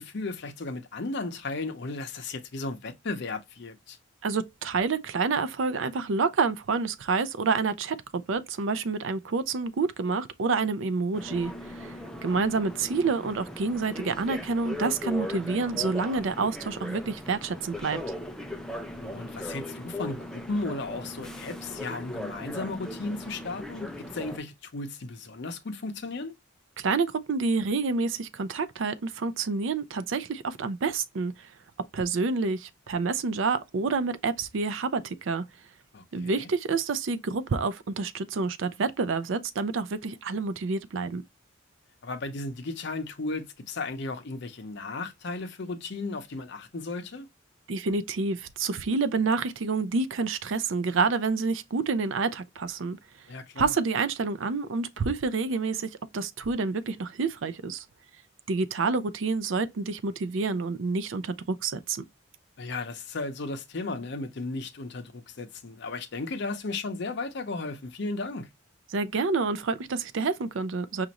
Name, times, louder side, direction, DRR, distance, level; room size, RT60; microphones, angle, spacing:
voice 1, 0.0-4.0 19.0-26.4 35.9-36.5 42.0-47.3 53.3-53.7 62.6-68.5, left 3 dB, 55° left, 0.6 m, -35 dB
voice 2, 4.2-11.9 12.2-18.0 26.8-31.5 31.9-35.4 36.1-41.2 47.7-53.0 53.6-57.8 58.5-62.0 68.9-71.1, right 4 dB, 65° right, 0.4 m, -28 dB
sound 1, 11.1-24.4, left 1 dB, 5° left, 0.3 m, -38 dB
5.1 x 2.5 x 2.9 m
head